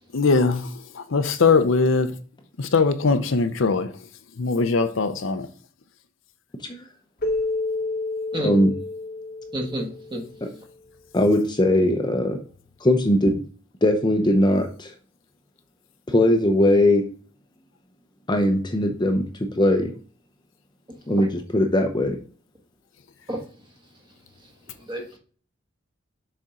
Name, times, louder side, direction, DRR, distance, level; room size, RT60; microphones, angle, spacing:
voice 1, 0.1-2.1 2.6-3.9 4.4-5.5, left 4 dB, 75° left, 0.6 m, -21 dB
Keyboard (musical), 7.2-10.4, left 2 dB, 45° left, 1.0 m, -29 dB
voice 2, 8.4-8.7 10.4-10.5 11.1-12.4 12.8-13.4 13.8-14.9 16.1-17.1 18.3-19.2 19.6-19.9 21.1-22.2, left 1 dB, 20° left, 0.7 m, -20 dB
voice 3, 9.5-10.2 21.2-21.3 23.3-23.4 24.9-25.2, right 1 dB, 25° right, 1.5 m, -29 dB
6.7 x 4.3 x 3.7 m
head